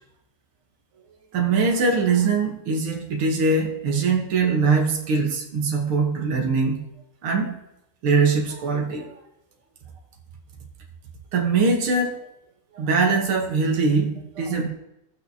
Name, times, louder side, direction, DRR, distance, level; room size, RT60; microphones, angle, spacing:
voice 1, 1.3-6.8 7.2-7.6 8.0-9.1 11.3-12.2 12.7-14.7, right 4 dB, 90° right, 1 dB, 2.2 m, -22 dB
17.5 x 6.3 x 2.8 m, 0.85 s
omnidirectional pair, 2.3 m